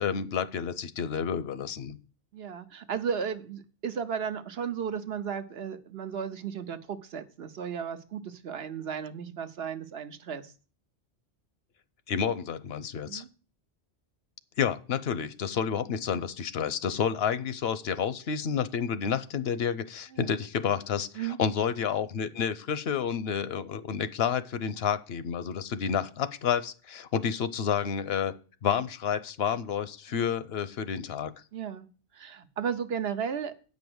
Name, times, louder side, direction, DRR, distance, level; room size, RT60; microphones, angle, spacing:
voice 1, 0.0-2.0 12.1-13.2 14.6-28.3 28.6-31.3, left 7 dB, 75° left, 14 dB, 0.9 m, -30 dB
voice 2, 2.3-10.5 13.0-13.3 20.1-20.3 21.1-21.4 30.1-30.3 31.5-31.9 32.1-33.5, right 7 dB, 75° right, 9 dB, 1.1 m, -34 dB
8.7 x 5.3 x 7.8 m, 0.38 s
omnidirectional pair, 1.1 m